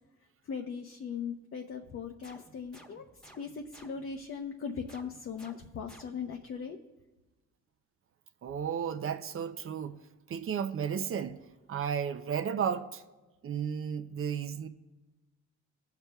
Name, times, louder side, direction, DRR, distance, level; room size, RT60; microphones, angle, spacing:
voice 1, 0.5-3.1 3.4-6.8, left 6 dB, 45° left, 0.7 m, -39 dB
sound 1, 2.2-4.3 4.9-6.5, right 1 dB, ahead, 1.2 m, -56 dB
voice 2, 8.4-10.0 10.3-11.4 11.7-13.0 13.4-14.7, right 7 dB, 45° right, 0.5 m, -33 dB
17.5 x 6.8 x 2.3 m
cardioid pair, 90°, 30 cm